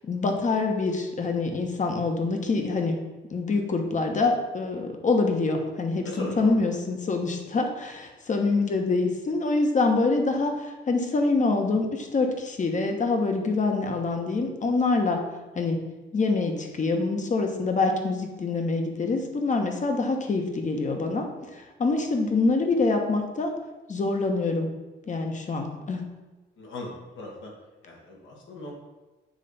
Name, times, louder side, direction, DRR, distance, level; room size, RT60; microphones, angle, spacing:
voice 1, 0.0-3.0 3.3-15.2 15.5-15.8 16.1-23.5 23.9-24.7 25.1-26.0, left 3 dB, 40° left, 4 dB, 1.1 m, -25 dB
voice 2, 6.0-6.5 26.6-27.5 27.8-28.7, left 2 dB, 75° left, -1 dB, 1.9 m, -38 dB
7.5 x 3.2 x 5.5 m, 1.1 s
cardioid pair, 90°, 20 cm